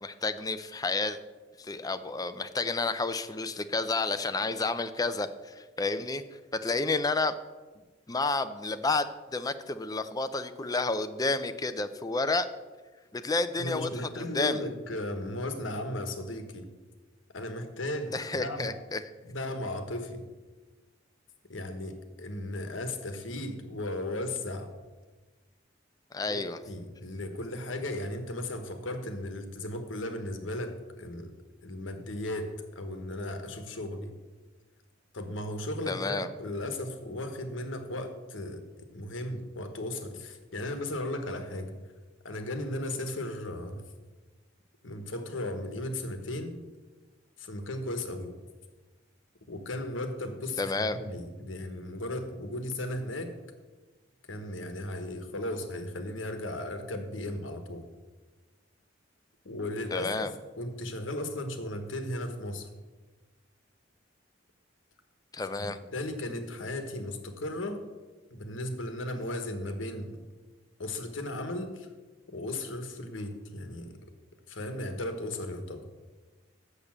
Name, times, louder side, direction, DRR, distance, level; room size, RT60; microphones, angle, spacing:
voice 1, 0.0-1.2 1.6-6.2 6.5-7.3 8.1-9.1 9.3-12.5 13.1-13.9 14.2-14.6 18.1-19.0 26.1-26.6 35.9-36.3 50.6-51.0 59.9-60.3 65.3-65.8, left 3 dB, 20° left, 10 dB, 0.5 m, -30 dB
voice 2, 13.6-16.7 17.3-18.7 19.2-20.3 21.5-24.7 26.3-31.3 31.6-34.1 35.1-38.6 38.9-41.8 42.2-43.9 44.8-46.6 47.4-48.3 49.5-53.3 54.3-57.8 59.4-60.3 60.6-62.7 65.6-67.8 68.3-70.2 70.8-71.9 72.3-74.1 74.5-75.9, left 1 dB, 80° left, 7 dB, 1.2 m, -36 dB
6.9 x 6.7 x 7.3 m, 1.2 s
head